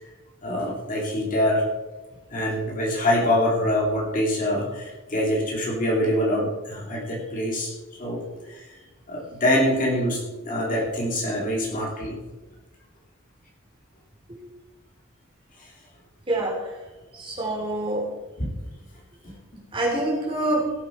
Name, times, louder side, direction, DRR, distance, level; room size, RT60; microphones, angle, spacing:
voice 1, 0.4-1.7 2.3-7.7 8.0-8.2 8.5-8.6 9.1-12.2 15.6-15.7 18.4-18.5 19.2-19.3, left 1 dB, 40° left, -2 dB, 2.9 m, -25 dB
voice 2, 16.3-16.6 17.1-18.1 19.7-20.7, right 1 dB, 25° right, -3 dB, 3.6 m, -26 dB
17.0 x 8.1 x 4.7 m, 1.2 s
head